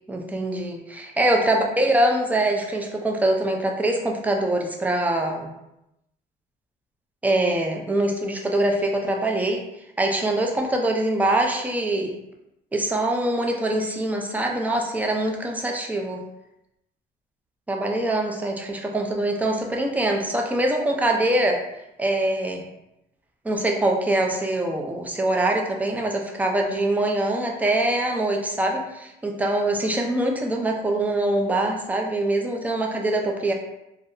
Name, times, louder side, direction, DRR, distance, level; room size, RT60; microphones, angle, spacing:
voice 1, 0.1-5.5 7.2-9.6 10.0-12.1 12.7-16.2 17.7-21.6 22.0-22.7 23.4-33.5, right 1 dB, 10° right, 1 dB, 0.4 m, -23 dB
2.7 x 2.0 x 2.5 m, 0.87 s
cardioid pair, 110°, 17 cm